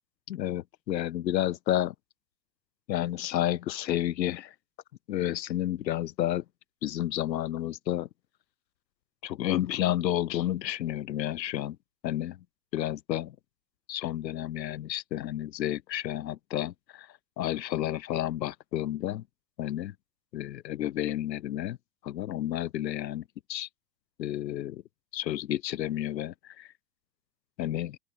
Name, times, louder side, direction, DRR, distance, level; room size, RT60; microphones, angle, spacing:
voice 1, 0.3-1.9 2.9-4.5 5.1-6.4 6.8-8.1 9.2-11.8 12.0-12.4 12.7-13.4 13.9-17.1 17.4-19.2 19.6-19.9 20.3-21.8 22.0-23.7 24.2-24.8 25.1-26.7 27.6-28.0, left 13 dB, 85° left, 0.6 m, -31 dB
open air
figure-of-eight pair, 85°, 49 cm